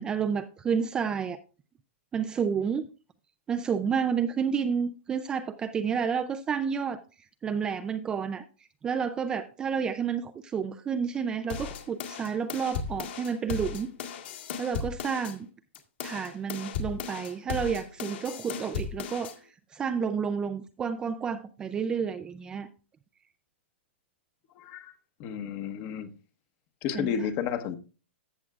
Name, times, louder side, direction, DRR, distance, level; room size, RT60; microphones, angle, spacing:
voice 1, 0.0-1.4 2.1-2.9 3.5-7.0 7.4-8.4 8.8-13.9 14.6-15.5 16.0-19.4 19.7-22.7 26.9-27.1, right 6 dB, 10° right, 0.3 m, -30 dB
sound 1, 11.5-15.4 15.7-19.4, left 6 dB, 55° left, 1.9 m, -36 dB
voice 2, 24.6-24.9 25.2-26.1 26.8-27.8, left 8 dB, 30° left, 1.0 m, -32 dB
14.0 x 7.3 x 2.4 m
hypercardioid pair, 160°, 7 cm